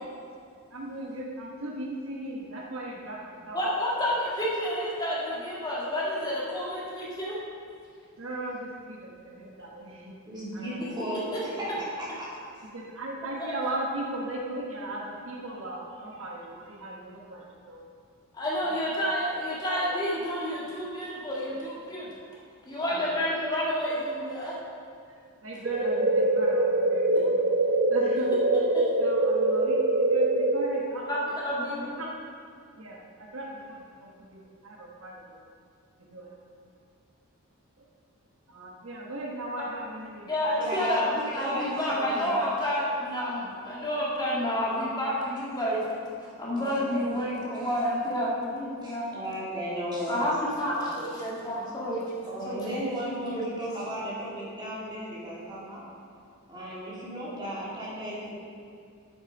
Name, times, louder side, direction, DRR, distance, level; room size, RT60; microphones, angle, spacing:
voice 1, 0.7-3.6 8.2-10.2 10.5-10.8 12.6-17.8 18.4-18.7 19.0-19.1 22.9-23.2 25.1-27.5 27.9-28.5 29.0-31.4 31.8-32.1 32.8-35.4 36.0-36.3 38.5-40.3 40.7-41.1, right 1 dB, 65° right, -2 dB, 1.2 m, -38 dB
voice 2, 3.5-7.4 18.3-22.1 22.7-24.6 28.7-28.8 31.1-31.9 40.3-45.8 46.4-49.1 50.1-52.0 52.5-52.8 53.3-53.4, equal, 20° left, -6 dB, 1.8 m, -29 dB
voice 3, 10.3-11.7 12.0-12.3 40.6-42.3 46.5-47.0 47.5-47.7 48.8-50.3 52.2-55.8 56.5-58.3, equal, 20° right, -8 dB, 2.7 m, -35 dB
sound 1, 25.6-30.7, right 2 dB, 45° right, 0.6 m, -24 dB
8.6 x 7.9 x 5.2 m, 2.3 s
head